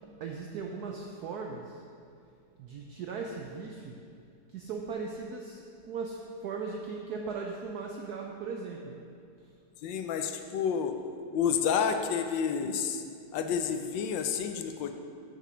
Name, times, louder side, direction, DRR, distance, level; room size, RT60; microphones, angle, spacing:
voice 1, 0.2-1.6 2.6-3.9 4.5-5.6 5.9-8.9, right 5 dB, 70° right, 1 dB, 1.0 m, -38 dB
voice 2, 9.8-11.0 11.3-13.0 13.3-14.9, left 7 dB, 75° left, 7 dB, 1.3 m, -29 dB
6.7 x 6.5 x 6.2 m, 2.4 s
omnidirectional pair, 2.1 m